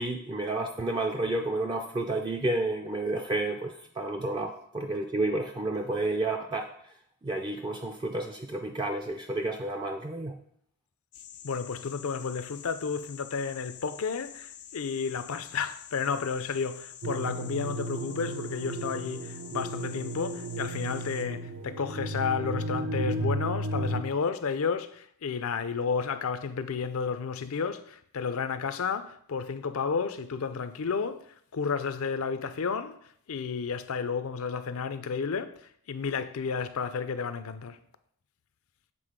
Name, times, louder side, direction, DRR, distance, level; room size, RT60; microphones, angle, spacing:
voice 1, 0.0-6.7 7.2-10.4, right 2 dB, 20° right, 0.4 m, -31 dB
sound 1, 11.1-21.3, left 9 dB, 85° left, 0.8 m, -47 dB
voice 2, 11.4-31.3 31.5-37.8, left 5 dB, 65° left, 0.5 m, -32 dB
sound 2, 17.0-24.0, right 1 dB, 70° right, 0.6 m, -34 dB
7.6 x 3.9 x 5.1 m
head